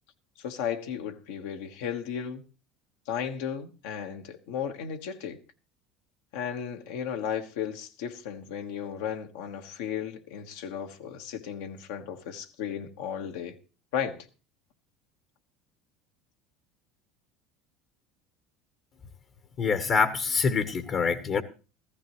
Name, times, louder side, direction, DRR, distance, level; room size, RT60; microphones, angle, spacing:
voice 1, 0.4-2.4 3.1-5.4 6.3-13.5 13.9-14.3, left 8 dB, 75° left, 1.4 m, -35 dB
voice 2, 19.6-21.4, left 5 dB, 45° left, 1.2 m, -25 dB
15.0 x 14.5 x 3.1 m
hypercardioid pair, 80°, 0 cm